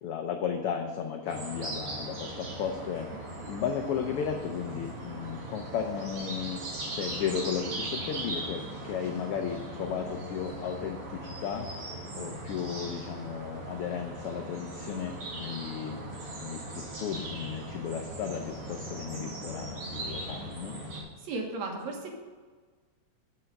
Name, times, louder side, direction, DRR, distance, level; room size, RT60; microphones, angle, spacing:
voice 1, 0.0-3.1 3.5-6.6 6.9-11.7 12.1-16.0 16.4-20.8, left 8 dB, 85° left, 4 dB, 1.2 m, -34 dB
sound 1, 1.3-21.0, right 2 dB, 55° right, 2.7 m, -39 dB
voice 2, 21.2-22.2, right 3 dB, 70° right, 1 dB, 2.7 m, -35 dB
7.9 x 5.7 x 7.5 m, 1.5 s
omnidirectional pair, 3.3 m